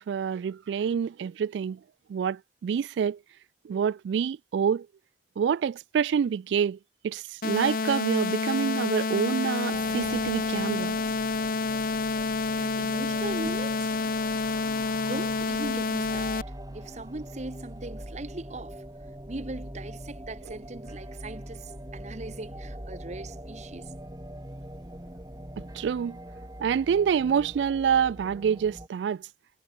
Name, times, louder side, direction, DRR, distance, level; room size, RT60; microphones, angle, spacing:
voice 1, 0.0-1.8 2.1-3.2 3.7-4.9 5.4-6.8 7.0-11.0 25.8-26.2 26.6-29.2, right 7 dB, 85° right, 0.3 m, -27 dB
sound 1, 7.4-16.4, left 4 dB, 55° left, 0.7 m, -28 dB
sound 2, 9.7-28.9, right 1 dB, 20° right, 3.8 m, -43 dB
voice 2, 12.6-13.9 14.9-16.4 16.7-18.8 19.3-23.9, right 2 dB, 40° right, 1.0 m, -39 dB
head